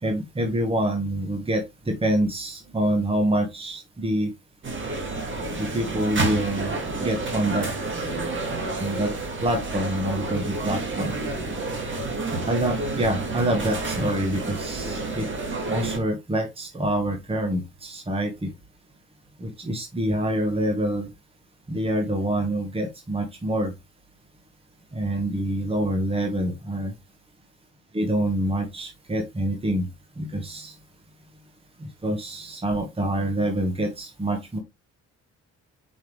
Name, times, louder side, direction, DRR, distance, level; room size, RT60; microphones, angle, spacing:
voice 1, 0.0-4.3 5.5-7.7 8.8-9.1 9.4-11.1 12.5-15.3 15.7-18.5 19.4-21.1 21.7-23.7 24.9-26.9 27.9-29.9 30.2-30.7 31.8-34.6, right 1 dB, 20° right, 4 dB, 1.6 m, -26 dB
sound 1, 4.6-16.0, right 2 dB, 40° right, 2.3 m, -29 dB
5.5 x 5.5 x 3.2 m, 0.21 s
cardioid pair, 90°, 30 cm